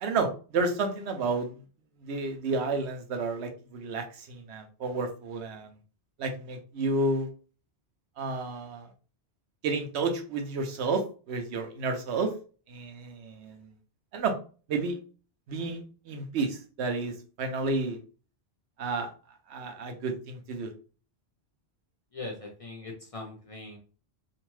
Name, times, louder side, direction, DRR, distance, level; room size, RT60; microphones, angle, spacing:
voice 1, 0.0-1.5 2.0-5.7 6.2-7.3 8.2-8.9 9.6-12.3 12.7-13.7 14.1-14.4 14.7-15.0 15.5-18.0 18.8-19.1 19.5-20.7, right 3 dB, 80° right, 5 dB, 0.9 m, -31 dB
voice 2, 22.1-23.8, left 2 dB, 40° left, -1 dB, 0.6 m, -40 dB
2.7 x 2.2 x 3.0 m, 0.37 s
omnidirectional pair, 1.1 m